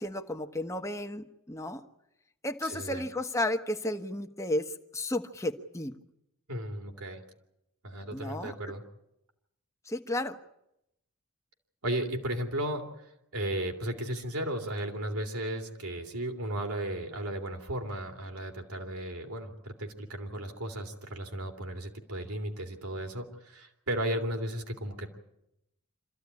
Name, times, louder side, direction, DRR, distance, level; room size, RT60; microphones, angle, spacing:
voice 1, 0.0-1.8 2.4-5.9 8.1-8.5 9.9-10.4, left 1 dB, 15° left, 6 dB, 1.1 m, -33 dB
voice 2, 2.6-3.0 6.5-7.2 7.8-8.8 11.8-12.9 13.3-25.1, right 1 dB, 75° right, 4 dB, 3.1 m, -35 dB
26.0 x 14.5 x 9.7 m, 0.84 s
head